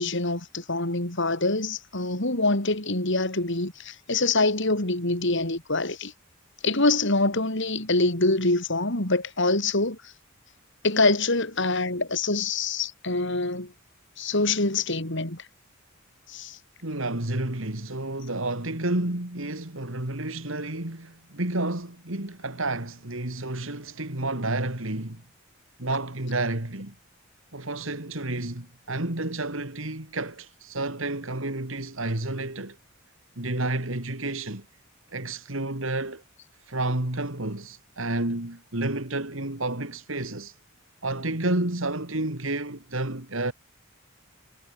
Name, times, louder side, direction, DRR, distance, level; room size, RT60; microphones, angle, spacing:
voice 1, 0.0-6.1 6.6-10.1 10.8-13.7 14.2-15.4 16.3-16.6, left 2 dB, 60° left, 4.8 m, -25 dB
voice 2, 16.8-25.2 25.8-26.9 27.5-32.8 33.4-34.6 35.1-36.2 36.7-40.5 41.0-43.5, right 2 dB, 65° right, 3.0 m, -30 dB
head